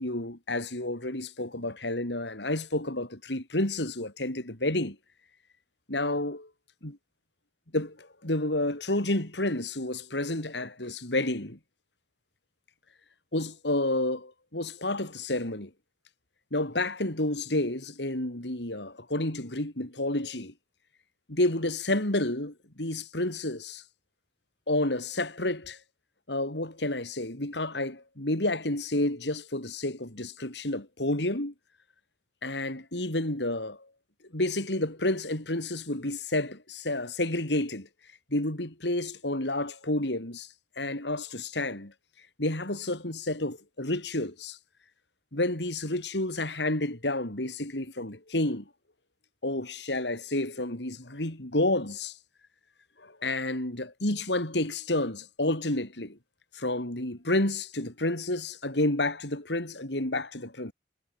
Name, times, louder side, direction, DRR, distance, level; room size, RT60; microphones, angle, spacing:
voice 1, 0.0-5.0 5.9-6.5 6.8-7.0 7.7-11.6 13.3-15.7 16.5-20.5 21.3-23.8 24.7-25.8 26.3-31.5 32.4-33.8 34.3-37.9 38.3-40.5 40.8-41.9 42.4-44.6 45.3-48.6 49.4-52.1 53.0-56.2 56.5-60.7, left 1 dB, 70° left, 4.3 m, -30 dB
head